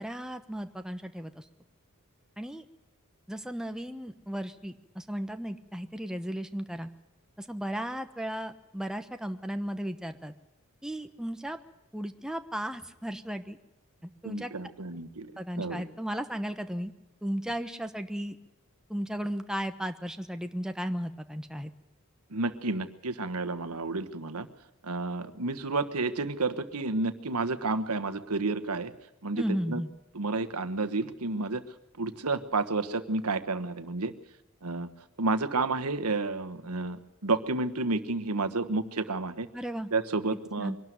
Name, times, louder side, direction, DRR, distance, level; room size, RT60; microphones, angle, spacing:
voice 1, 0.0-1.4 2.4-2.6 3.3-6.9 7.4-10.3 10.8-11.6 11.9-13.6 14.0-14.5 15.4-16.9 17.2-18.4 18.9-21.7 29.4-29.9 39.5-39.9 40.6-40.8, equal, 5° right, 7 dB, 1.1 m, -35 dB
voice 2, 14.2-15.3 15.6-15.8 22.3-24.5 24.8-28.9 29.2-29.8 30.1-31.6 32.0-34.1 34.6-34.9 35.2-39.5 39.9-40.7, right 3 dB, 85° right, 11 dB, 1.4 m, -30 dB
23.5 x 12.5 x 9.4 m, 0.92 s
head